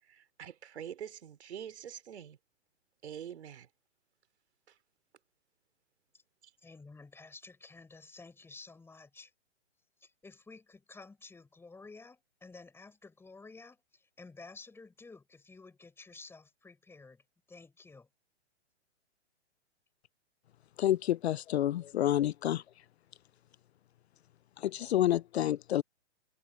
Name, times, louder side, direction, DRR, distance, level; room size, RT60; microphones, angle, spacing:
voice 1, 0.1-2.4 3.0-3.7, right 9 dB, 65° right, 4.3 m, -45 dB
voice 2, 6.6-9.3 10.0-17.2 17.5-18.1, left 3 dB, 5° left, 4.1 m, -52 dB
voice 3, 20.8-22.6 24.6-25.8, left 12 dB, 65° left, 0.5 m, -29 dB
hypercardioid pair, 135°, 35 cm